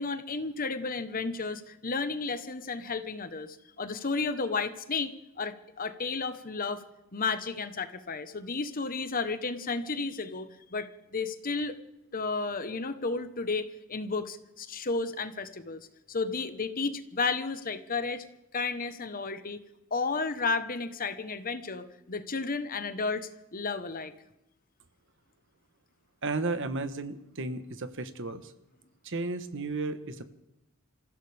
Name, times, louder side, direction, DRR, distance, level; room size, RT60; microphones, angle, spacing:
voice 1, 0.0-6.8 7.1-11.8 12.1-15.8 16.1-18.2 18.5-19.6 19.9-24.1, left 4 dB, 40° left, 10 dB, 1.1 m, -32 dB
voice 2, 26.2-28.5 29.0-30.2, right 3 dB, 60° right, 10 dB, 1.2 m, -33 dB
26.0 x 15.5 x 3.5 m, 0.88 s
head